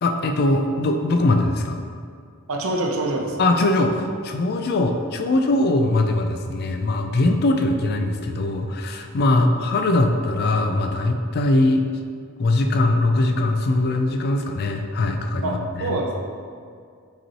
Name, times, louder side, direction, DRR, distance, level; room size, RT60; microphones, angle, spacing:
voice 1, 0.0-1.8 3.4-11.9 12.4-16.0, left 2 dB, 50° left, 4 dB, 0.3 m, -21 dB
voice 2, 2.5-3.4 9.3-9.5 15.4-15.5 15.8-16.2, right 2 dB, 75° right, 0 dB, 0.6 m, -25 dB
5.2 x 3.0 x 2.8 m, 2.2 s
head